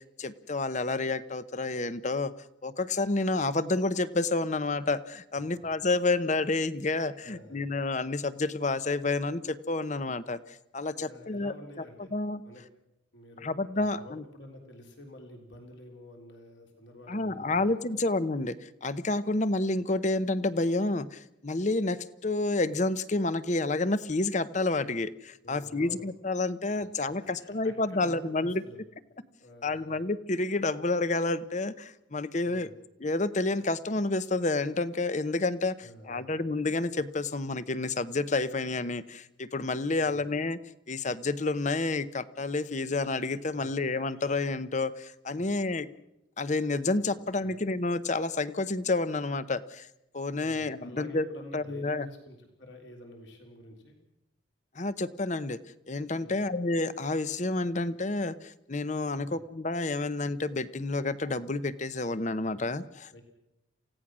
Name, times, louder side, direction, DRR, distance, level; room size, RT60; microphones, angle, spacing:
voice 1, 0.0-2.3 2.6-11.5 12.1-12.4 13.4-14.2 17.1-28.6 29.6-32.7 33.0-40.6 40.9-45.9 46.4-49.9 50.1-51.3 51.5-52.1 54.7-55.6 55.9-63.2, left 2 dB, 40° left, 15 dB, 0.8 m, -29 dB
voice 2, 5.3-5.7 7.2-7.7 11.0-12.1 12.4-12.6 13.1-17.7 25.4-26.1 27.0-28.8 29.4-30.0 32.4-32.7 35.8-36.3 45.3-45.5 47.4-47.6 50.4-54.0 56.2-56.4 59.2-59.4 63.1-63.2, left 1 dB, 65° left, 2 dB, 3.6 m, -49 dB
28.0 x 16.5 x 6.2 m, 0.85 s
head